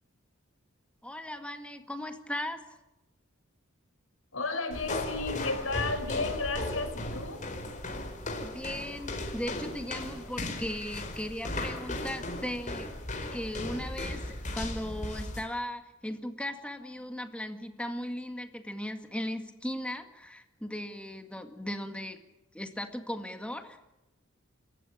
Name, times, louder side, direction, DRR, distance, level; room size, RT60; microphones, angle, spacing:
voice 1, 1.0-2.6 8.4-12.9 13.3-22.2 22.5-23.9, left 1 dB, 5° left, 6 dB, 2.0 m, -37 dB
voice 2, 4.3-7.5, left 3 dB, 85° left, 6 dB, 5.7 m, -33 dB
sound 1, 4.7-15.5, left 1 dB, 40° left, 4.4 m, -36 dB
28.5 x 15.5 x 8.7 m, 0.94 s
head